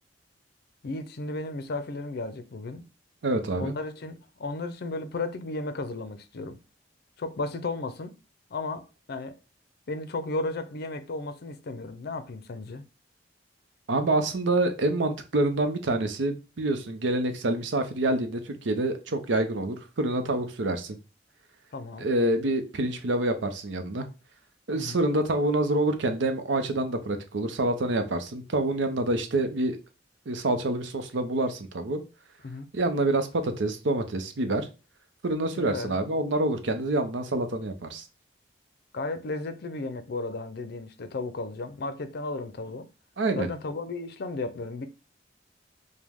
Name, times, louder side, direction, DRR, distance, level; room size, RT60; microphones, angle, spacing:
voice 1, 0.8-2.9 3.6-6.6 7.2-8.2 8.5-9.4 9.9-12.8 21.7-22.1 24.7-25.0 32.4-32.7 35.6-36.0 38.9-42.9 43.4-44.9, left 2 dB, 60° left, 0.5 m, -34 dB
voice 2, 3.2-3.7 13.9-21.0 22.0-24.1 24.7-29.8 30.3-32.0 32.7-34.7 35.2-38.0 43.2-43.5, right 2 dB, 80° right, 0.6 m, -27 dB
5.0 x 2.2 x 3.5 m
head